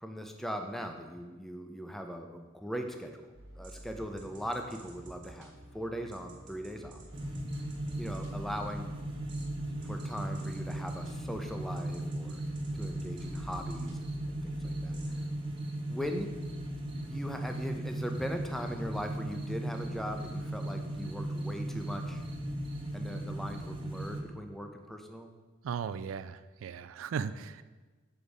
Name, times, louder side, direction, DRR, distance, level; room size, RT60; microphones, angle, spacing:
voice 1, 0.0-3.2 3.6-7.0 8.0-9.0 9.8-12.4 12.7-15.3 15.9-16.4 17.1-22.2 22.9-25.3, equal, ahead, 4 dB, 0.5 m, -39 dB
sound 1, 3.3-15.2, right 1 dB, 65° right, 1.5 m, -50 dB
sound 2, 7.1-24.2, right 1 dB, 25° right, 0.8 m, -37 dB
voice 2, 25.6-27.6, right 6 dB, 80° right, 13 dB, 0.3 m, -37 dB
7.0 x 4.0 x 4.8 m, 1.3 s
head